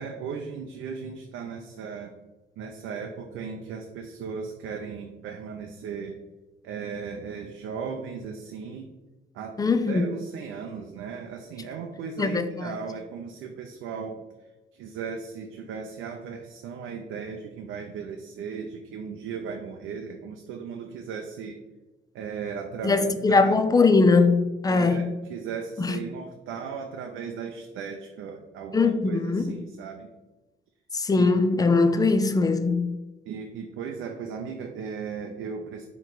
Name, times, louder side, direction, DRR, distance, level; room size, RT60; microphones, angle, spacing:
voice 1, 0.0-2.1 2.6-6.2 6.6-8.9 9.3-9.6 9.9-14.2 14.7-21.6 22.1-23.6 24.7-30.1 31.1-31.3 33.3-35.9, right 6 dB, 85° right, 0.5 m, -36 dB
voice 2, 9.6-10.0 12.2-12.7 22.8-25.0 25.8-26.0 28.7-29.6 30.9-32.9, left 3 dB, 20° left, 0.4 m, -21 dB
4.5 x 3.1 x 3.8 m
cardioid pair, 90°, 20 cm